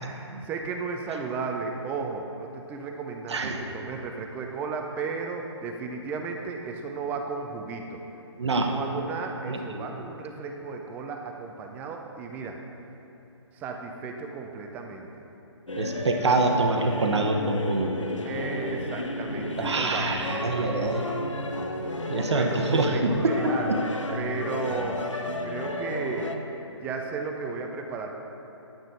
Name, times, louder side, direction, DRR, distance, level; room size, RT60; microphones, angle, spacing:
voice 1, 0.0-8.0 8.6-12.6 13.5-15.1 18.3-21.2 22.3-23.7 24.2-25.0 25.4-26.4 26.7-28.1, right 4 dB, 10° right, 3 dB, 0.5 m, -34 dB
voice 2, 8.4-8.7 9.5-9.9 15.8-18.0 19.6-21.0 22.1-23.8, right 2 dB, 65° right, 3 dB, 1.0 m, -25 dB
sound 1, 15.7-26.4, left 1 dB, 85° left, 0.8 m, -32 dB
10.0 x 8.9 x 3.8 m, 3.0 s
figure-of-eight pair, 140°, 15 cm